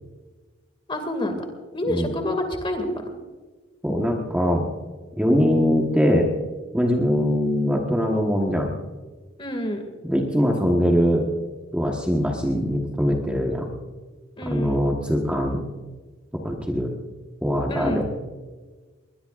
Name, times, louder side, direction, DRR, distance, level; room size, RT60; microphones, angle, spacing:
voice 1, 0.9-1.4 1.7-2.9 9.4-9.8 14.4-14.8 17.7-18.0, left 1 dB, 25° left, 5 dB, 2.3 m, -27 dB
voice 2, 3.8-4.7 5.2-6.3 6.7-8.7 10.0-11.3 11.7-13.7 14.4-15.6 16.3-16.9 17.4-18.0, equal, 5° right, 0 dB, 1.3 m, -22 dB
21.5 x 20.5 x 2.5 m, 1.3 s
head